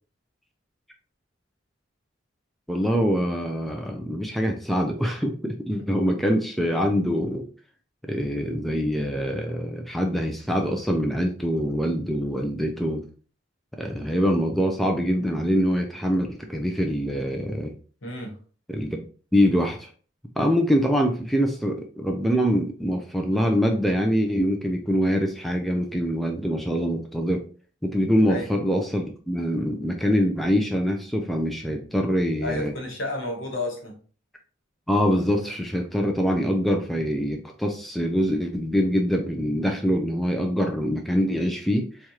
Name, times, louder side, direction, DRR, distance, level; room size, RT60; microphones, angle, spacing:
voice 1, 2.7-7.5 8.0-13.0 13.8-17.7 18.7-19.0 19.3-19.9 20.4-27.4 27.8-32.7 34.9-41.9, equal, ahead, 2 dB, 0.3 m, -24 dB
voice 2, 18.0-18.3 28.3-28.5 32.4-33.9, left 1 dB, 75° left, 1 dB, 1.3 m, -31 dB
4.5 x 2.4 x 2.8 m, 0.41 s
head